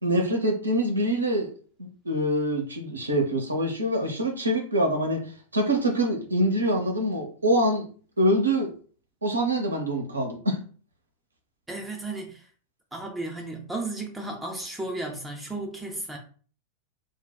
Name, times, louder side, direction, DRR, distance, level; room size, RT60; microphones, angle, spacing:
voice 1, 0.0-1.5 1.8-7.8 8.2-8.7 9.2-10.6, right 1 dB, 80° right, 0.7 m, -25 dB
voice 2, 11.7-12.5 12.9-16.2, right 2 dB, 10° right, 0.5 m, -34 dB
3.4 x 2.2 x 2.2 m
figure-of-eight pair, 90°, 0 cm